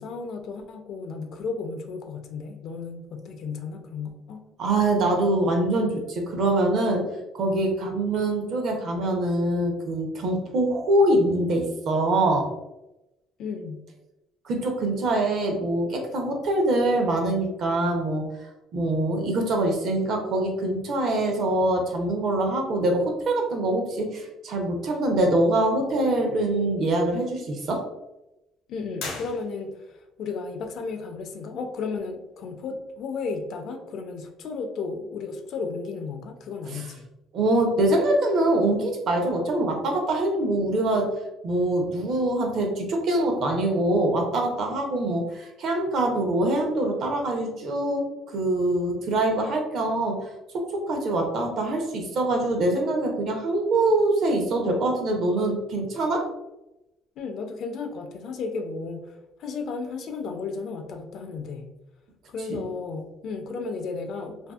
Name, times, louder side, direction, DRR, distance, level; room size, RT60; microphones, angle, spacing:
voice 1, 0.0-4.4 13.4-13.8 28.7-37.1 57.2-61.7 62.3-64.5, left 4 dB, 55° left, 5 dB, 0.4 m, -34 dB
voice 2, 4.6-7.1 7.3-12.5 14.4-18.3 18.7-27.8 36.7-36.8 37.3-41.1 41.4-48.1 48.3-50.3 50.5-56.3 62.5-62.6, right 1 dB, 50° right, 2 dB, 0.6 m, -24 dB
sound 1, 28.9-30.0, left 3 dB, 80° left, 0.7 m, -37 dB
2.7 x 2.6 x 2.3 m, 0.93 s
cardioid pair, 145°, 0 cm